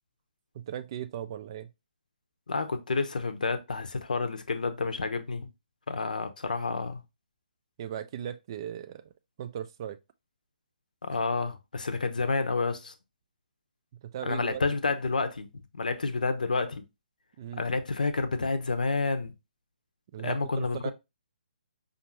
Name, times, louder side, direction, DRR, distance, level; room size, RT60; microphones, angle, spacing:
voice 1, 0.5-1.7 7.8-9.0 9.4-10.0 11.1-11.2 13.9-14.6 17.4-17.6 20.1-20.9, right 10 dB, 30° right, 0.3 m, -38 dB
voice 2, 2.5-5.5 5.9-7.0 11.0-12.9 14.2-16.8 17.6-19.3 20.2-20.9, left 3 dB, 60° left, 0.7 m, -29 dB
5.1 x 2.5 x 3.0 m
figure-of-eight pair, 135°, 5 cm